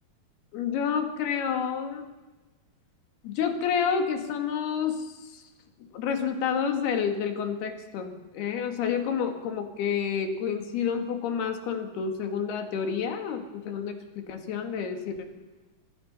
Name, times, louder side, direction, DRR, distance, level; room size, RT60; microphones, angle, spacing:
voice 1, 0.5-2.1 3.2-5.4 5.9-15.3, left 7 dB, 85° left, 5 dB, 4.0 m, -29 dB
26.5 x 19.0 x 5.6 m, 1.2 s
omnidirectional pair, 4.5 m